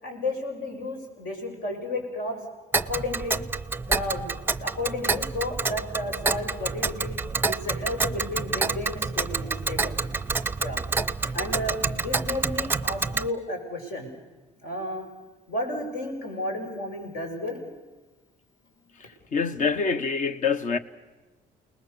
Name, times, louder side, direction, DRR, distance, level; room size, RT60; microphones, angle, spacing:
voice 1, 0.0-2.4 2.9-3.4 3.9-4.3 4.6-7.2 7.5-10.0 10.6-10.8 11.2-14.1 14.6-15.1 15.5-17.6, left 1 dB, 65° left, 6.5 m, -32 dB
Tick, 2.7-13.3, right 4 dB, 10° right, 0.7 m, -28 dB
voice 2, 19.0-20.8, left 5 dB, 50° left, 1.2 m, -26 dB
29.0 x 20.0 x 7.0 m
cardioid pair, 110°, 17 cm